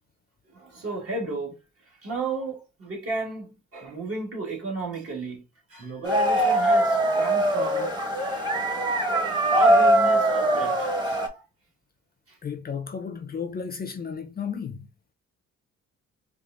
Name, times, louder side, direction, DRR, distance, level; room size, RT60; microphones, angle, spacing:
voice 1, 0.5-1.6 2.0-5.4 5.7-7.9 9.5-11.4 12.3-12.4, right 3 dB, 50° right, 2.0 m, -33 dB
sound 1, 6.0-11.3, right 1 dB, 15° right, 1.1 m, -22 dB
voice 2, 12.4-14.9, left 6 dB, 30° left, 0.6 m, -33 dB
4.7 x 2.5 x 2.5 m
cardioid pair, 90°, 30 cm